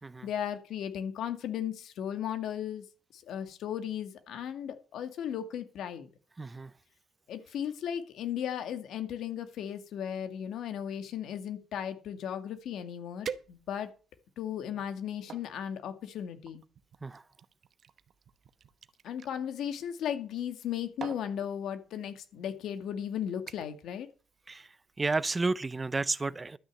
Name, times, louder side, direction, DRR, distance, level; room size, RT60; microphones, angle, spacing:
voice 1, 0.2-2.8 3.1-6.1 7.3-13.9 14.4-16.6 19.0-24.1, left 9 dB, 75° left, 2.1 m, -36 dB
voice 2, 6.4-6.7 17.0-17.2 24.5-26.6, right 3 dB, 25° right, 0.6 m, -32 dB
sound 1, 12.6-12.7 13.2-14.0 14.6-15.5 16.4-19.3 20.4-20.7 21.0-21.3 22.2-22.3 22.8-23.0 23.5-23.9 24.2-24.5 24.9-25.0, right 7 dB, 55° right, 0.9 m, -45 dB
12.5 x 6.2 x 7.7 m
cardioid pair, 90°, 0 cm